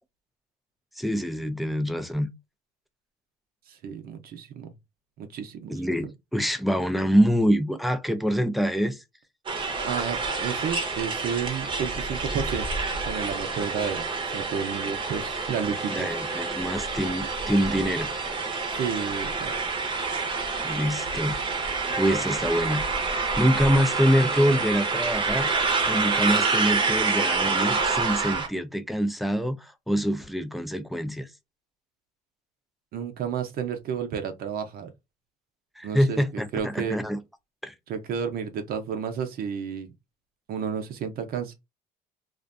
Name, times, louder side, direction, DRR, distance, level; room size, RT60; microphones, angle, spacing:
voice 1, 1.0-2.3 5.7-9.0 15.9-18.1 20.6-21.4 22.0-25.5 25.8-31.3 35.8-37.2 37.6-37.7, equal, ahead, 0.4 m, -25 dB
voice 2, 3.7-4.7 5.2-5.7 9.8-12.7 13.1-16.1 18.7-19.5 32.9-34.9 35.8-37.0 37.9-39.9 40.5-41.5, right 7 dB, 65° right, 0.6 m, -31 dB
sound 1, 9.5-28.5, right 4 dB, 30° right, 0.7 m, -27 dB
2.5 x 2.2 x 2.4 m
cardioid pair, 110°, 17 cm